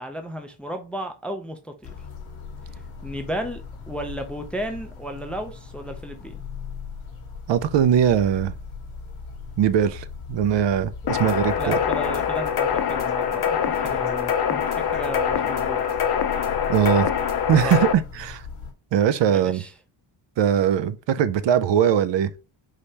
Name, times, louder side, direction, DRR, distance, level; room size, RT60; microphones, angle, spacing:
voice 1, 0.0-2.0 3.0-6.4 11.6-15.8 17.6-17.9 19.3-19.7, equal, 5° left, 0.4 m, -34 dB
sound 1, 1.8-18.7, left 5 dB, 85° left, 1.3 m, -39 dB
voice 2, 7.5-8.5 9.6-11.8 16.7-17.1 17.5-18.4 18.9-19.6 20.4-22.3, right 9 dB, 65° right, 0.5 m, -21 dB
sound 2, 11.1-17.9, left 8 dB, 55° left, 0.6 m, -24 dB
4.9 x 3.2 x 2.8 m
wide cardioid pair, 170°, 47 cm